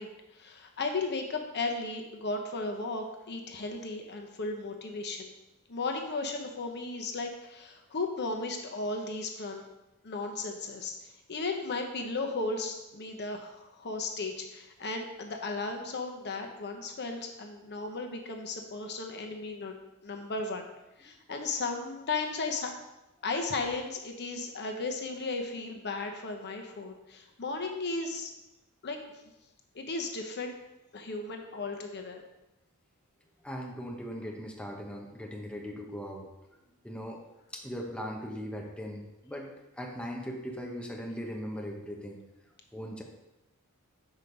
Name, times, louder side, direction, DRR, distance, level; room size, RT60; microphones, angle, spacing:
voice 1, 0.0-5.3 5.7-9.6 10.0-20.7 21.0-22.7 23.2-28.3 28.8-29.0 29.7-30.6 30.9-32.2, left 3 dB, 50° left, 4 dB, 0.9 m, -35 dB
voice 2, 33.4-36.3 36.8-37.2 37.5-39.5 39.8-42.2 42.7-43.0, equal, 5° left, 0 dB, 0.9 m, -39 dB
6.4 x 4.8 x 5.3 m, 0.95 s
head